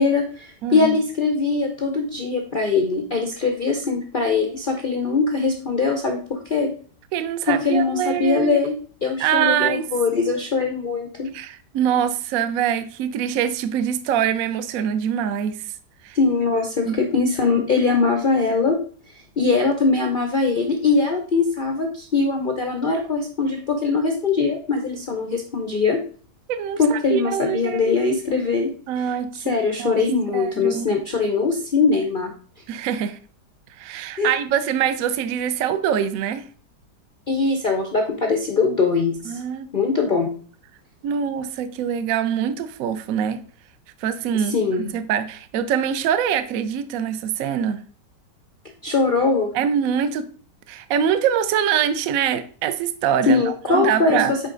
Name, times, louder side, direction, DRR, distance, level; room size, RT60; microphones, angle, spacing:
voice 1, 0.0-6.7 7.5-11.3 16.1-18.8 19.1-26.0 26.8-29.1 29.5-32.3 34.2-34.3 37.3-39.4 39.7-40.3 44.3-44.9 48.8-49.5 53.3-54.4, left 4 dB, 70° left, 0.4 m, -21 dB
voice 2, 0.6-0.9 7.1-8.6 9.2-9.8 11.3-15.6 16.0-16.2 16.9-17.0 26.5-27.8 28.9-29.5 29.8-30.0 30.3-30.9 32.7-33.2 33.8-36.4 39.2-39.7 41.0-43.4 44.0-44.6 44.9-47.9 49.5-50.3 50.7-54.3, right 9 dB, 65° right, 0.9 m, -24 dB
6.5 x 4.5 x 3.8 m
omnidirectional pair, 1.9 m